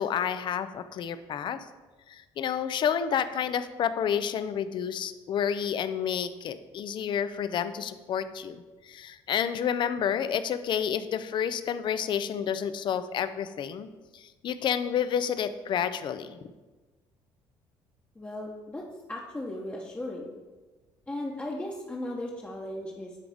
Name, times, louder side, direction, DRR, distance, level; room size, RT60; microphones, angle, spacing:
voice 1, 0.0-1.6 2.1-16.4, left 8 dB, 50° left, 12 dB, 0.4 m, -30 dB
voice 2, 18.1-18.8 19.1-20.3 21.1-23.2, left 1 dB, 15° left, -4 dB, 0.9 m, -36 dB
9.9 x 3.5 x 3.5 m, 1.2 s
cardioid pair, 90°, 10 cm